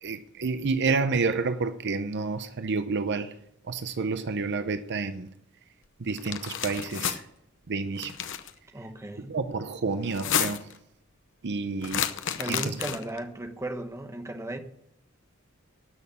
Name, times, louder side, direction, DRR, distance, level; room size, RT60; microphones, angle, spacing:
voice 1, 0.0-3.4 3.6-5.3 6.0-7.3 7.7-8.2 9.3-10.7 11.4-12.1 12.5-12.8, right 4 dB, 55° right, 0.7 m, -29 dB
sound 1, 6.2-7.2 8.0-8.5 10.0-10.8 11.8-13.2, left 9 dB, 60° left, 0.9 m, -30 dB
voice 2, 8.7-9.3 12.3-14.6, right 1 dB, 15° right, 1.1 m, -35 dB
12.5 x 6.4 x 8.4 m
head